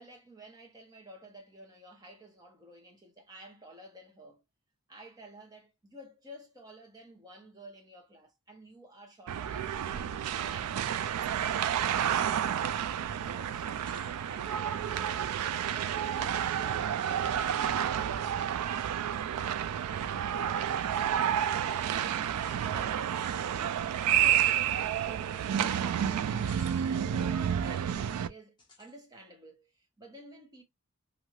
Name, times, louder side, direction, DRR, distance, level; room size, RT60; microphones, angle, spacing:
voice 1, 0.0-4.4 4.9-10.2 10.4-11.1 13.2-18.0 20.2-30.6, right 1 dB, 15° right, 0.8 m, -52 dB
sound 1, 9.3-28.3, right 9 dB, 90° right, 0.3 m, -30 dB
sound 2, 12.1-12.4 12.8-12.9 13.8-14.2 15.6-16.1 17.6-17.7 19.1-19.3 20.6-20.8 22.3-22.6 24.3-24.7 26.3-26.8 27.3-27.4 28.6-29.0, left 3 dB, 20° left, 0.9 m, -57 dB
2.6 x 2.3 x 3.0 m
head